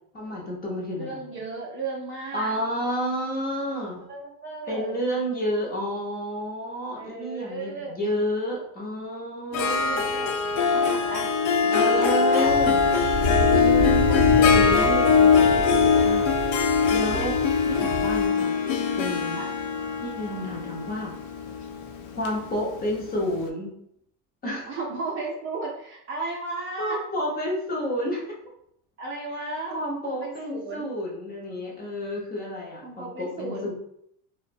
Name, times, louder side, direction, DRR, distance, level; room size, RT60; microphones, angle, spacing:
voice 1, 0.1-1.2 2.3-4.1 4.7-10.1 11.7-12.8 13.3-16.4 16.9-17.4 17.7-18.5 19.0-19.4 20.0-21.1 22.1-23.7 24.4-24.7 26.8-28.3 29.7-33.7, equal, 25° left, -3 dB, 0.6 m, -30 dB
voice 2, 1.0-2.5 4.1-5.0 7.0-7.9 9.5-11.3 11.6-12.5 16.8-16.9 19.4-19.5 24.7-27.0 29.0-30.8 32.8-33.7, right 3 dB, 35° right, -2 dB, 0.4 m, -35 dB
Harp, 9.5-23.1, left 5 dB, 80° left, 0.5 m, -22 dB
sound 1, 12.4-18.3, left 1 dB, 60° left, 0.9 m, -30 dB
2.9 x 2.1 x 2.5 m, 0.70 s
cardioid pair, 140°, 39 cm